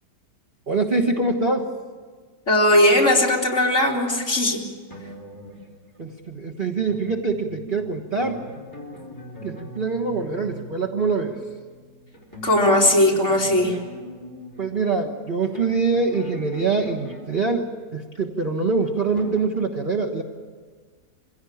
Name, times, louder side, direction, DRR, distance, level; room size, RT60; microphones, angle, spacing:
voice 1, 0.7-1.7 6.0-8.4 9.4-11.4 14.6-20.2, right 4 dB, 35° right, 0 dB, 1.4 m, -24 dB
voice 2, 2.5-4.6 12.4-13.8, left 1 dB, 45° left, -2 dB, 3.5 m, -18 dB
sound 1, 4.9-6.2 6.8-18.0 18.7-19.4, equal, 10° left, 4.7 m, -41 dB
25.5 x 16.5 x 8.7 m, 1.5 s
omnidirectional pair, 1.8 m